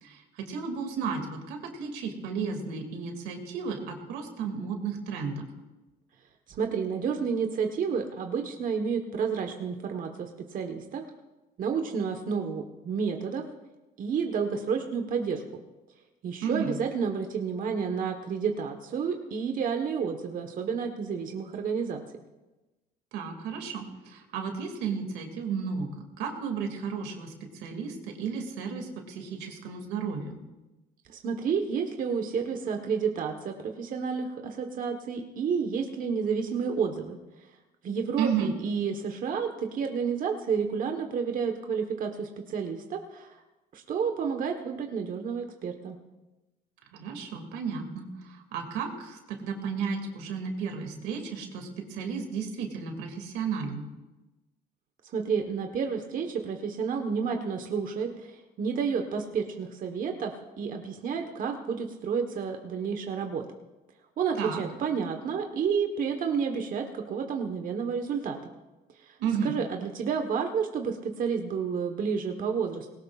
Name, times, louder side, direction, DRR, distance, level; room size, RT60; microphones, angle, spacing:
voice 1, 0.0-5.5 16.4-16.7 23.1-25.9 26.2-30.4 38.2-38.5 46.9-53.9 64.4-64.6 69.2-69.5, right 6 dB, 90° right, 4 dB, 2.4 m, -33 dB
voice 2, 6.5-11.0 11.6-13.4 14.0-15.4 16.2-22.0 31.1-37.2 37.8-43.4 43.7-46.0 55.1-63.4 64.2-68.5 69.0-69.2 69.4-72.9, right 6 dB, 55° right, 4 dB, 1.3 m, -30 dB
20.0 x 18.0 x 2.5 m, 1.1 s
cardioid pair, 110°, 17 cm